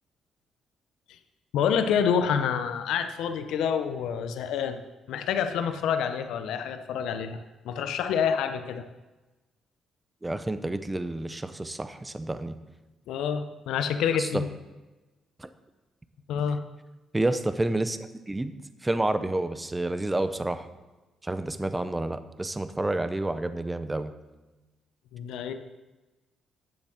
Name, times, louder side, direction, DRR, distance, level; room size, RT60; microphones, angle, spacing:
voice 1, 1.5-4.8 5.1-7.4 7.6-8.8 13.1-14.5 16.3-16.6 25.1-25.5, left 7 dB, 85° left, 8 dB, 0.7 m, -27 dB
voice 2, 10.2-12.6 14.2-14.4 15.4-15.5 17.1-18.0 18.3-18.5 18.8-20.6 21.2-24.1, right 2 dB, 15° right, 11 dB, 0.7 m, -29 dB
10.5 x 7.2 x 6.2 m, 1.1 s
cardioid pair, 90°, 0 cm